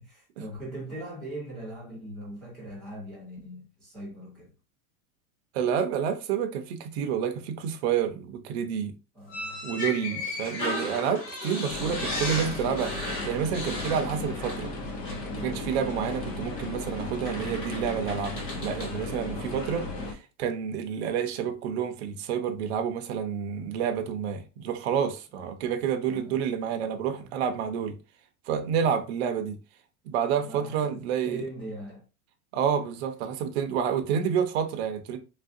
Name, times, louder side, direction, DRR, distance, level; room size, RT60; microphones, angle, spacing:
voice 1, 0.0-4.5 9.1-9.7 10.0-10.3 19.3-19.6 25.4-25.6 26.1-26.4 27.2-27.3 30.4-32.1, right 1 dB, ahead, 0.9 m, -41 dB
voice 2, 5.5-8.9 9.6-14.7 15.3-28.0 28.5-29.6 30.1-31.4 32.5-35.2, right 8 dB, 45° right, 0.5 m, -29 dB
sound 1, 9.3-14.8 15.0-15.3 16.5-16.7 17.2-19.0, left 2 dB, 25° left, 1.0 m, -35 dB
sound 2, 11.7-20.1, left 2 dB, 85° left, 1.1 m, -35 dB
3.2 x 2.4 x 2.6 m
supercardioid pair, 165°, 47 cm